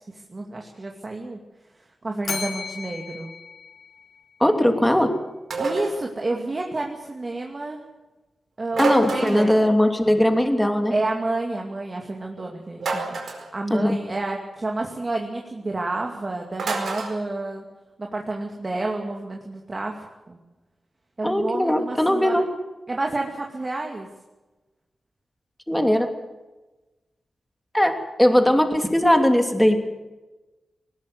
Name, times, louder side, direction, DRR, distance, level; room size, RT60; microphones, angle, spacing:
voice 1, 0.1-1.4 2.0-3.3 5.6-7.8 8.6-9.5 10.9-13.2 13.5-17.6 18.0-19.9 20.3-20.4 21.2-22.4 22.9-24.1, right 2 dB, 35° right, 1 dB, 2.5 m, -29 dB
Bell, 2.2-4.5, left 5 dB, 75° left, 2.9 m, -35 dB
voice 2, 4.4-5.1 8.8-10.9 13.7-14.0 21.2-22.5 25.7-26.1 27.7-29.8, left 1 dB, 5° left, 5 dB, 2.9 m, -19 dB
sound 1, 5.5-6.0 8.7-9.6 12.8-13.5 16.6-17.2, right 3 dB, 90° right, 4.6 m, -27 dB
20.0 x 19.5 x 8.0 m, 1.1 s
wide cardioid pair, 90°, 0 cm